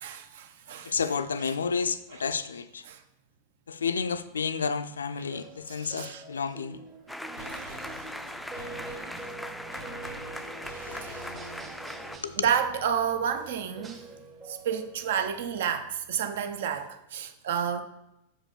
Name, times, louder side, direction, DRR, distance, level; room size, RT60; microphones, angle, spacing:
voice 1, 0.0-0.9 2.1-2.2 2.9-3.0 5.7-6.2 7.5-7.7 11.0-11.3 12.4-14.0 14.5-17.8, right 8 dB, 55° right, 0.7 m, -30 dB
voice 2, 0.8-2.8 3.7-6.8 10.9-11.5 12.2-12.3, left 5 dB, 70° left, 0.4 m, -31 dB
sound 1, 5.3-15.3, right 3 dB, 20° right, 0.9 m, -46 dB
sound 2, 7.1-12.2, left 1 dB, ahead, 0.4 m, -40 dB
sound 3, 7.1-16.5 16.7-16.8, right 2 dB, 80° right, 1.2 m, -48 dB
6.4 x 4.8 x 3.8 m
figure-of-eight pair, 90°, 0 cm